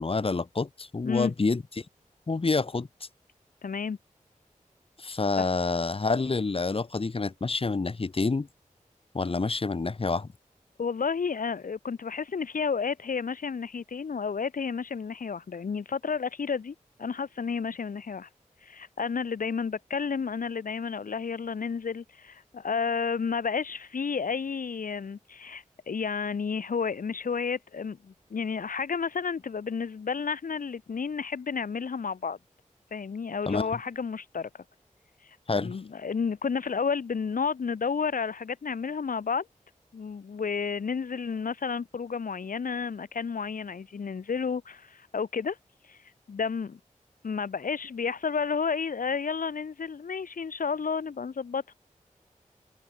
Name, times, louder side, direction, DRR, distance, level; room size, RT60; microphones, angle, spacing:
voice 1, 0.0-1.8 2.3-2.9 5.0-8.5 9.1-10.3 33.5-33.7 35.5-35.8, left 3 dB, 45° left, 0.9 m, -28 dB
voice 2, 3.6-4.0 5.4-5.5 10.8-18.3 18.6-32.4 32.9-34.5 35.5-39.5 39.9-45.6 45.9-46.0 46.3-46.8 47.2-51.7, left 5 dB, 85° left, 1.3 m, -31 dB
cardioid pair, 45°, 14 cm